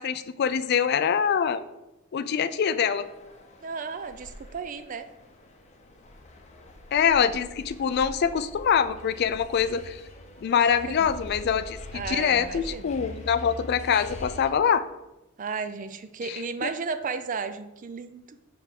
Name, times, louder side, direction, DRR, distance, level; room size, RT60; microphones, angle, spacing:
voice 1, 0.0-1.6 2.1-3.1 6.9-10.0 10.4-14.8 16.3-16.7, left 7 dB, 50° left, 13 dB, 0.3 m, -24 dB
sound 1, 2.9-14.5, left 1 dB, 30° left, 0.7 m, -44 dB
voice 2, 3.6-5.1 10.5-11.1 11.9-12.9 15.4-18.4, right 5 dB, 40° right, 10 dB, 0.4 m, -34 dB
5.8 x 3.5 x 5.8 m, 0.94 s
head